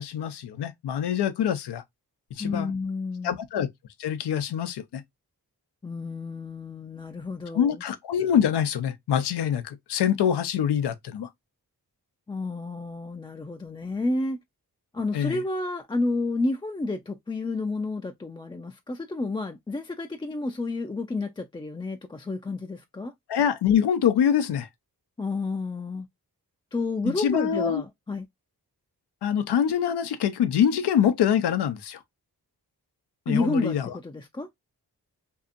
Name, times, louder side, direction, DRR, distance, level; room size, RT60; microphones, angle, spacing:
voice 1, 0.0-1.8 2.4-2.7 3.2-3.7 4.0-5.0 7.5-11.3 15.1-15.4 23.3-24.7 27.0-27.8 29.2-32.0 33.3-33.9, left 9 dB, 85° left, 0.5 m, -25 dB
voice 2, 2.4-3.4 5.8-7.8 12.3-14.4 14.9-23.1 25.2-26.1 26.7-28.3 33.3-34.5, left 2 dB, 15° left, 0.3 m, -30 dB
2.7 x 2.5 x 2.4 m
cardioid pair, 45°, 39 cm